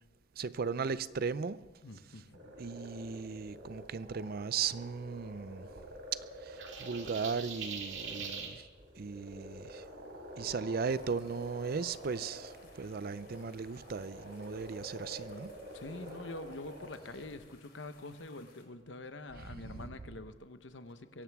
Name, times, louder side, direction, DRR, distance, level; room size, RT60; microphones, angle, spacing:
voice 1, 0.4-1.7 2.6-5.7 6.4-8.6 9.0-9.8 10.4-15.6 19.5-19.9, right 5 dB, 55° right, 0.5 m, -37 dB
voice 2, 1.8-2.5 8.2-8.3 15.7-21.2, left 2 dB, 70° left, 1.0 m, -46 dB
sound 1, 2.3-17.3, equal, 85° right, 4.0 m, -49 dB
sound 2, 6.6-8.5, right 6 dB, 70° right, 2.1 m, -42 dB
sound 3, 10.9-18.6, left 4 dB, 55° left, 3.2 m, -63 dB
23.0 x 17.0 x 3.6 m
head